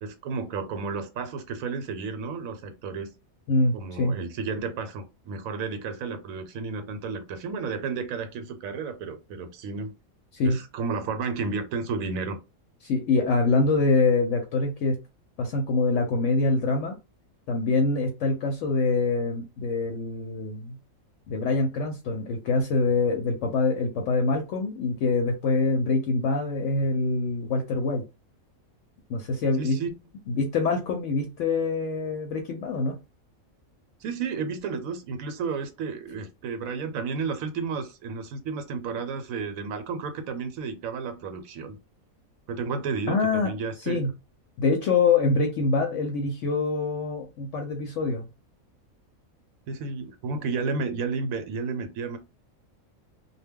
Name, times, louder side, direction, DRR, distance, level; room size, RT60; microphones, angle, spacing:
voice 1, 0.0-3.1 3.7-9.9 10.4-12.4 29.6-30.0 34.0-41.8 42.5-44.1 49.7-52.2, right 5 dB, 80° right, 1.0 m, -32 dB
voice 2, 3.5-4.1 10.3-10.6 12.8-15.0 15.4-16.9 17.5-20.8 21.3-28.0 29.1-29.8 30.3-33.0 43.1-43.5 43.8-44.1 44.6-48.3, left 3 dB, 65° left, 0.8 m, -25 dB
2.2 x 2.1 x 3.5 m
omnidirectional pair, 1.4 m